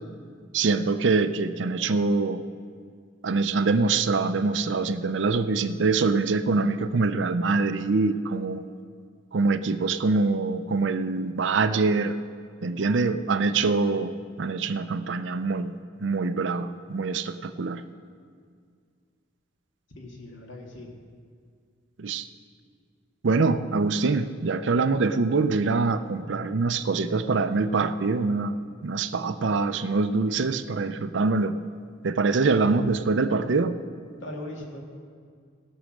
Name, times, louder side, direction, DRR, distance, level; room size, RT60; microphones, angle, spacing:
voice 1, 0.5-2.4 3.2-8.6 9.3-12.1 12.6-17.8 22.0-22.2 23.2-31.6 32.0-33.8, right 3 dB, 65° right, 10 dB, 0.5 m, -24 dB
voice 2, 19.9-20.9 32.5-32.7 34.2-34.8, left 1 dB, 70° left, 0 dB, 2.1 m, -39 dB
17.5 x 6.3 x 6.4 m, 2.1 s
head